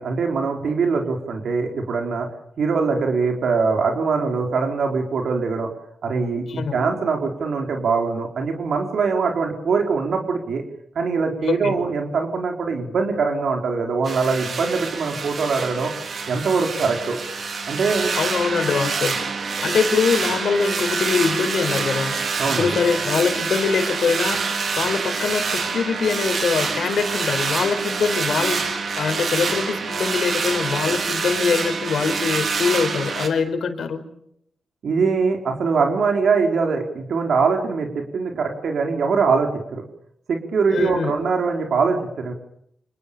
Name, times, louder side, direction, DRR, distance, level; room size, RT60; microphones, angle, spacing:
voice 1, 0.0-2.3 2.6-5.7 6.0-10.6 10.9-15.9 16.3-17.2 17.7-18.1 22.4-22.7 34.8-39.8 40.3-42.3, right 4 dB, 70° right, 3 dB, 4.6 m, -22 dB
sound 1, 14.0-33.3, right 5 dB, 55° right, 4.6 m, -26 dB
voice 2, 18.1-19.2 19.6-22.2 22.5-24.4 24.8-34.0 40.7-41.1, left 5 dB, 75° left, 7 dB, 5.0 m, -23 dB
29.0 x 28.5 x 7.1 m, 0.73 s
wide cardioid pair, 160°, 0 cm